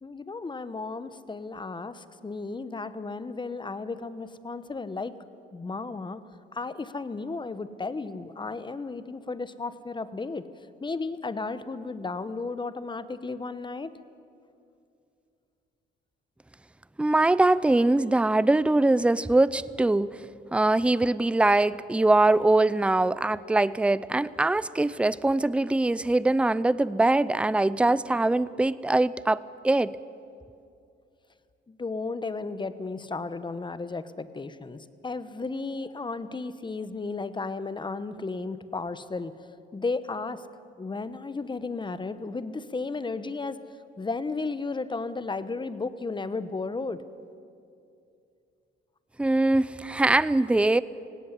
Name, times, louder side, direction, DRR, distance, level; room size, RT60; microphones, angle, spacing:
voice 1, 0.0-5.1 5.5-6.2 6.5-10.4 10.8-13.9 31.7-39.3 39.7-40.4 40.8-43.6 44.0-47.0, left 3 dB, 25° left, 13 dB, 1.0 m, -34 dB
voice 2, 17.0-20.2 20.5-29.9 49.2-50.8, right 2 dB, 5° right, 17 dB, 0.5 m, -22 dB
18.0 x 17.0 x 9.8 m, 2.5 s
cardioid pair, 90°, 20 cm